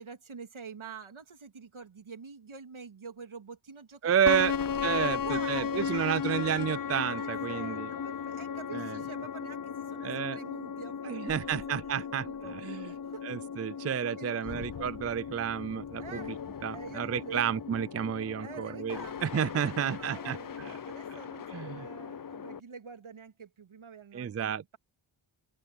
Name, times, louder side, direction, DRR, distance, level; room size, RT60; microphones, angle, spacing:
voice 1, 0.0-4.5 5.1-6.0 7.2-13.4 13.8-14.9 16.0-16.3 16.7-17.4 18.4-24.8, right 5 dB, 70° right, 2.8 m, -47 dB
voice 2, 4.0-4.5 4.8-5.2 5.5-7.9 8.7-9.0 10.0-10.4 11.0-12.3 12.6-12.9 13.2-16.4 16.6-20.7 21.5-21.8 24.1-24.8, right 8 dB, 35° right, 0.4 m, -31 dB
sound 1, 4.3-22.6, left 7 dB, 45° left, 0.6 m, -36 dB
open air
wide cardioid pair, 90°, 49 cm